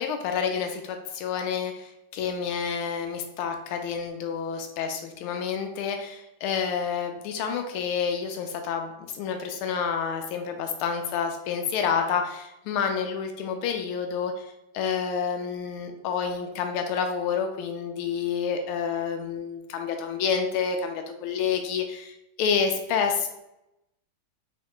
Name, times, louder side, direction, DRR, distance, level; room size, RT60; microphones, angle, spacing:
voice 1, 0.0-14.3 14.7-23.3, left 6 dB, 90° left, 5 dB, 1.5 m, -29 dB
3.9 x 3.2 x 3.0 m, 0.89 s
omnidirectional pair, 2.3 m